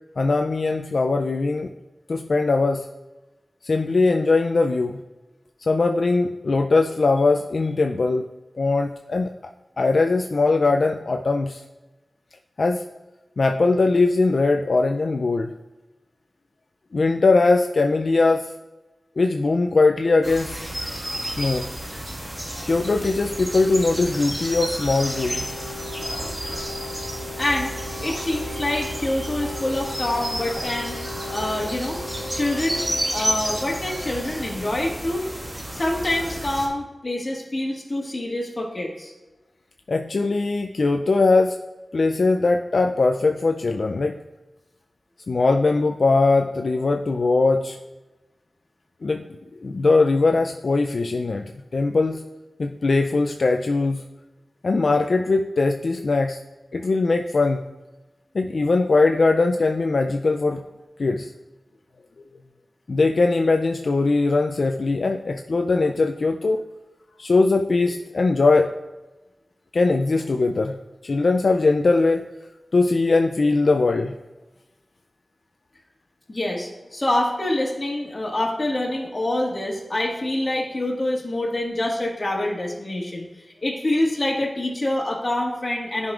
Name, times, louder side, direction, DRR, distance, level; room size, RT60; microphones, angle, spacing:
voice 1, 0.2-1.7 2.1-2.9 3.6-5.0 5.6-8.3 8.6-9.5 9.8-11.6 12.6-12.8 13.4-15.6 16.9-18.5 19.2-20.6 21.4-21.7 22.6-25.5 39.9-41.6 41.9-44.2 45.3-47.8 49.0-52.2 52.6-54.0 54.6-56.4 56.7-57.6 58.3-60.6 61.0-61.3 62.9-66.6 67.2-68.7 69.7-72.3 72.7-74.2, left 3 dB, 75° left, 4 dB, 0.3 m, -20 dB
sound 1, 20.2-36.7, right 1 dB, 25° right, 1.6 m, -31 dB
sound 2, 24.9-34.8, left 2 dB, 10° left, 1.7 m, -38 dB
voice 2, 27.4-27.7 28.0-31.0 31.3-32.0 32.3-32.8 33.1-35.2 35.7-39.1 76.3-83.2 83.6-86.1, left 1 dB, 40° left, -2 dB, 1.7 m, -26 dB
10.5 x 5.2 x 2.4 m, 1.1 s
wide cardioid pair, 60°, 0 cm